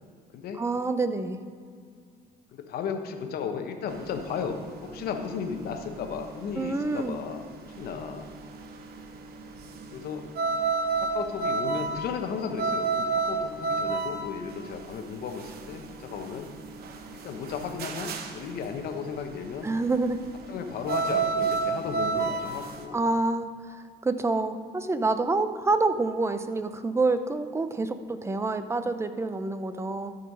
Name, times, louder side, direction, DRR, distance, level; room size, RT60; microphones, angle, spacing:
voice 1, 0.6-1.4 6.5-7.2 19.6-20.2 22.9-30.2, right 3 dB, 15° right, 10 dB, 0.6 m, -27 dB
voice 2, 2.5-7.4 7.8-8.3 9.9-10.2 11.0-16.5 17.2-19.7 20.5-23.0, left 6 dB, 65° left, 5 dB, 1.1 m, -35 dB
sound 1, 3.9-22.8, right 4 dB, 70° right, 1.0 m, -31 dB
13.0 x 5.6 x 5.4 m, 2.1 s
cardioid pair, 110°, 17 cm